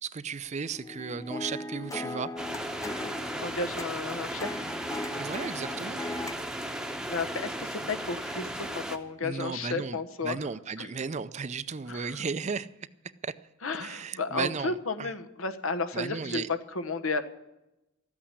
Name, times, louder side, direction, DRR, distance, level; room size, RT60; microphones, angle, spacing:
voice 1, 0.0-2.3 5.2-6.0 9.2-10.0 10.2-12.7 13.2-13.3 13.8-15.1 15.9-16.5, right 5 dB, 35° right, 0.5 m, -35 dB
sound 1, 0.7-6.4, left 2 dB, 15° left, 0.6 m, -38 dB
sound 2, 2.4-9.0, right 1 dB, 5° right, 0.9 m, -36 dB
voice 2, 3.4-4.7 7.1-10.4 10.8-10.9 11.9-12.2 13.6-17.2, left 3 dB, 80° left, 1.1 m, -33 dB
13.5 x 8.6 x 9.9 m
head